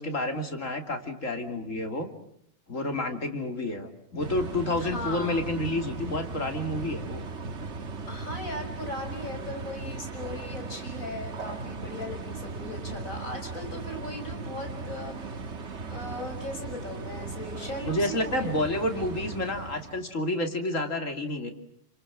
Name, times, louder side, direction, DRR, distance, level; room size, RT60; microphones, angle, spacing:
voice 1, 0.0-2.1 2.7-7.2 17.8-21.5, left 1 dB, 70° left, 5 dB, 3.3 m, -30 dB
sound 1, 4.2-20.1, right 4 dB, 60° right, 1.7 m, -37 dB
voice 2, 4.8-5.4 8.1-15.5 15.9-18.5, left 1 dB, 90° left, 4 dB, 6.4 m, -38 dB
29.5 x 27.0 x 7.5 m, 0.72 s
omnidirectional pair, 1.4 m